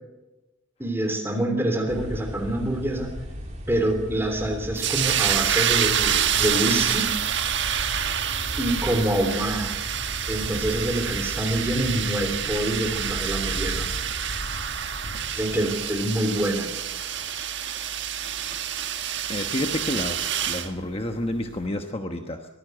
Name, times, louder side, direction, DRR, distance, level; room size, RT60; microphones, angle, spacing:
voice 1, 0.8-3.1 3.7-7.1 8.6-9.7 10.3-13.9 15.3-16.7, right 1 dB, 10° right, 4 dB, 3.3 m, -26 dB
sound 1, 1.9-16.2, equal, 35° right, 3.4 m, -36 dB
sound 2, 4.8-20.7, right 9 dB, 55° right, 1.4 m, -27 dB
sound 3, 10.3-15.5, left 1 dB, 45° left, 7.6 m, -43 dB
voice 2, 19.3-22.5, left 1 dB, 25° left, 5 dB, 1.1 m, -30 dB
23.5 x 15.0 x 8.0 m, 1.1 s
head